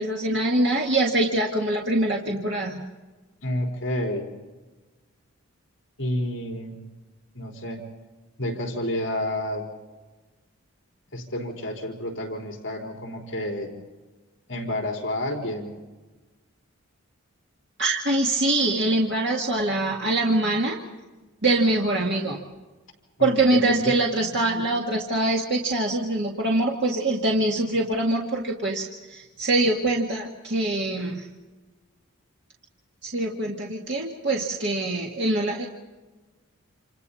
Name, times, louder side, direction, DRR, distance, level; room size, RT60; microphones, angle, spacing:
voice 1, 0.0-2.8 17.8-20.8 21.4-22.4 23.2-31.3 33.0-35.7, right 2 dB, 50° right, -2 dB, 2.1 m, -24 dB
voice 2, 3.4-4.3 6.0-6.8 7.3-7.8 8.4-9.7 11.1-13.7 14.5-15.7 23.2-23.3 23.6-23.9, left 1 dB, 55° left, 0 dB, 4.2 m, -30 dB
28.5 x 28.0 x 4.2 m, 1.2 s
head